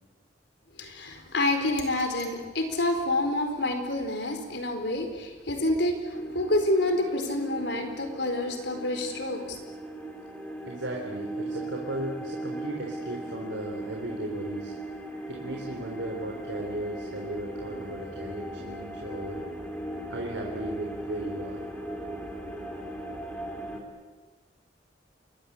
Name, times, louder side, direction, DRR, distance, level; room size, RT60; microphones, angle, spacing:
voice 1, 0.8-9.6, left 1 dB, 65° left, 6 dB, 4.6 m, -28 dB
sound 1, 6.1-23.8, right 1 dB, 5° left, 4.1 m, -38 dB
voice 2, 10.7-14.8 15.3-19.4 20.1-21.6 22.5-22.6, right 1 dB, 85° right, 0 dB, 3.9 m, -36 dB
28.5 x 22.0 x 8.7 m, 1.3 s
head